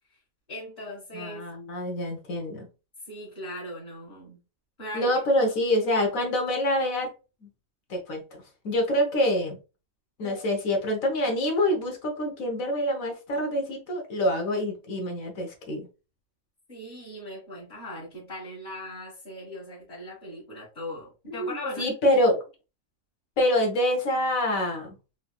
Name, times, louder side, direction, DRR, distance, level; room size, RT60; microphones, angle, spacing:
voice 1, 0.5-1.4 3.0-4.4 4.8-5.1 10.2-10.4 16.7-21.9, left 1 dB, 30° left, -8 dB, 1.6 m, -39 dB
voice 2, 1.1-2.7 4.9-7.1 7.4-7.5 7.9-8.2 8.6-9.6 10.2-15.9 21.4-22.4 23.4-25.0, left 1 dB, 65° left, 2 dB, 1.4 m, -26 dB
3.9 x 2.9 x 2.3 m, 0.31 s
omnidirectional pair, 1.6 m